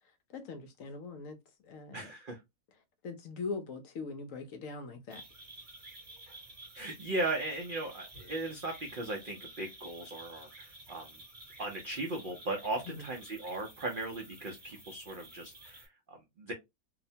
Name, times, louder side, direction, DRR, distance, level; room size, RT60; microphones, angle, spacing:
voice 1, 0.3-1.4 1.6-2.1 3.0-5.2 12.9-13.1, left 4 dB, 70° left, 0.9 m, -41 dB
voice 2, 1.9-2.4 6.7-11.2 11.6-16.5, right 2 dB, 70° right, 0.5 m, -37 dB
sound 1, 5.1-15.9, right 2 dB, 35° right, 1.1 m, -51 dB
2.8 x 2.1 x 2.6 m
omnidirectional pair, 1.6 m